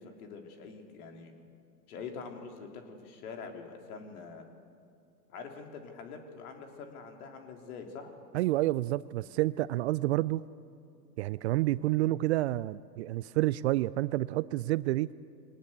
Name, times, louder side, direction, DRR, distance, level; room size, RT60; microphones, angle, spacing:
voice 1, 0.0-1.3 1.9-4.5 5.3-8.1, left 5 dB, 60° left, 3 dB, 3.6 m, -45 dB
voice 2, 8.3-10.4 11.2-15.1, right 17 dB, 45° right, 19 dB, 0.5 m, -29 dB
22.0 x 19.0 x 8.1 m, 2.4 s
hypercardioid pair, 100°, 49 cm